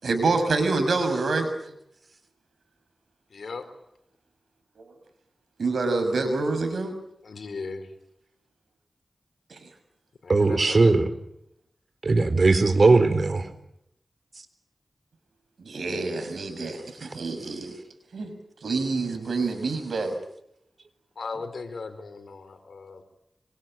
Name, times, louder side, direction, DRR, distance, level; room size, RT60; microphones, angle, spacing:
voice 1, 0.0-1.5 4.8-4.9 5.6-6.9 9.5-9.7 15.6-17.7 18.1-18.3 18.6-20.2, right 3 dB, 85° right, 8 dB, 6.2 m, -27 dB
voice 2, 3.3-3.7 7.2-7.9 10.2-10.9 21.2-23.0, left 4 dB, 85° left, 9 dB, 4.2 m, -37 dB
voice 3, 10.3-11.1 12.0-13.5, right 3 dB, 60° right, 11 dB, 3.9 m, -19 dB
26.5 x 24.5 x 9.0 m, 0.78 s
cardioid pair, 50°, 0 cm